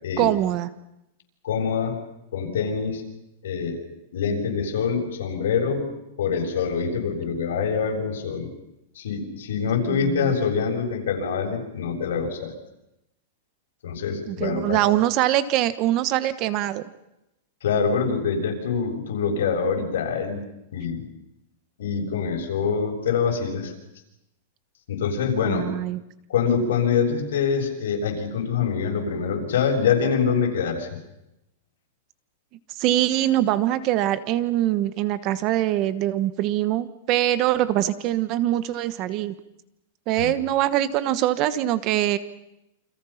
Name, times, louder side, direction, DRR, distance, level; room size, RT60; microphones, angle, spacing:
voice 1, 0.2-0.7 9.8-10.3 14.3-16.8 25.4-26.0 32.8-39.3 40.1-42.2, right 13 dB, 35° right, 14 dB, 1.2 m, -23 dB
voice 2, 1.4-2.0 2.3-3.0 3.4-3.8 4.1-8.5 9.0-12.5 13.8-14.8 17.6-20.4 20.7-21.1 21.8-23.7 24.9-25.7 26.3-31.0 40.2-40.3, left 6 dB, 80° left, 2 dB, 7.2 m, -25 dB
29.5 x 26.5 x 5.9 m, 0.87 s
supercardioid pair, 165°, 0 cm